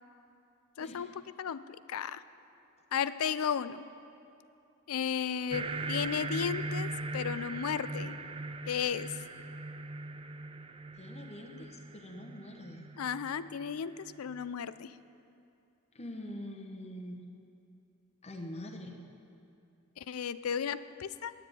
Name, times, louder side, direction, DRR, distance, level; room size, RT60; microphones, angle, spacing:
voice 1, 0.8-2.2 2.9-3.8 4.9-8.2 8.7-9.2 13.0-14.9 20.0-21.3, left 7 dB, 85° left, 15 dB, 0.4 m, -34 dB
sound 1, 5.5-14.4, right 2 dB, 25° right, 0.5 m, -40 dB
voice 2, 11.0-12.8 15.9-17.3 18.2-19.0, left 1 dB, 30° left, 1 dB, 0.9 m, -44 dB
10.5 x 9.4 x 9.0 m, 2.7 s
head